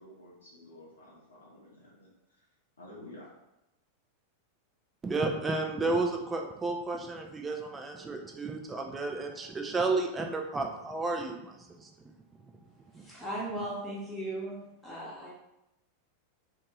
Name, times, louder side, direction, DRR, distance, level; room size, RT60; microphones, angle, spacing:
voice 1, 0.0-2.1 2.8-3.3, left 1 dB, 70° left, -5 dB, 0.8 m, -51 dB
voice 2, 5.0-12.1 12.9-13.1, right 3 dB, 15° right, 3 dB, 0.4 m, -32 dB
voice 3, 12.9-14.6 14.8-15.3, right 1 dB, 10° left, -6 dB, 1.0 m, -37 dB
2.6 x 2.5 x 3.0 m, 0.88 s
figure-of-eight pair, 90°, 0 cm